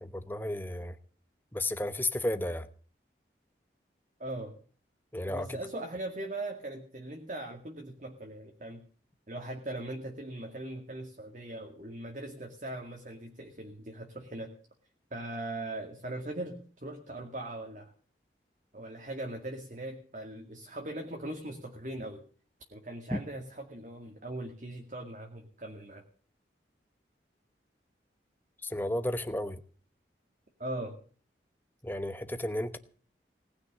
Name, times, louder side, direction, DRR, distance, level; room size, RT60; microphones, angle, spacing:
voice 1, 0.0-0.9 1.5-2.7 5.1-5.6 23.1-23.2 28.6-29.6 31.8-32.8, left 1 dB, 10° left, 9 dB, 1.0 m, -33 dB
voice 2, 4.2-4.5 5.2-8.8 9.3-14.5 15.1-17.9 18.7-22.2 22.7-26.0 30.6-31.0, right 1 dB, 45° right, 2 dB, 2.1 m, -40 dB
19.0 x 6.5 x 9.9 m, 0.43 s
head